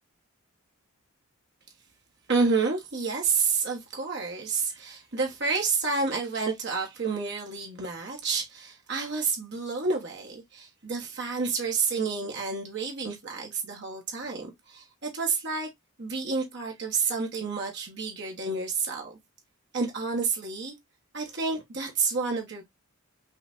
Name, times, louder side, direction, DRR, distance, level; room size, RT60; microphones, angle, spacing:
voice 1, 2.3-15.7 16.0-19.2 19.7-20.7 21.1-22.6, right 4 dB, 55° right, 1.2 m, -29 dB
5.6 x 3.2 x 2.6 m
head